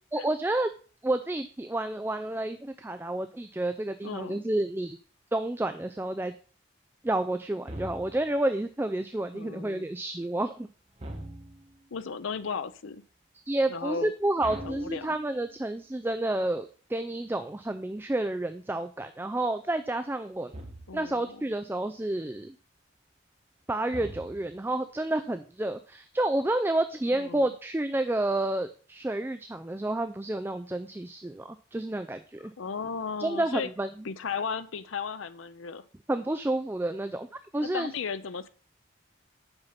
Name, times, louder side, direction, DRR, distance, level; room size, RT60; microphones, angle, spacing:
voice 1, 0.1-0.7 1.0-5.0 5.3-6.3 7.0-10.7 13.5-20.5 20.9-22.5 23.7-32.5 33.2-33.9 36.1-37.9, right 1 dB, 10° right, 9 dB, 0.3 m, -30 dB
voice 2, 4.0-4.4 9.3-9.9 11.9-13.0 13.7-14.1 14.6-15.1 20.9-21.4 27.1-27.5 32.6-33.7 34.0-35.8 37.6-38.5, left 5 dB, 90° left, 13 dB, 0.6 m, -35 dB
sound 1, 7.7-8.4 11.0-11.8 14.4-15.6 20.5-21.2 23.9-24.7, right 1 dB, 30° right, 1.3 m, -42 dB
7.9 x 5.6 x 5.7 m, 0.40 s
head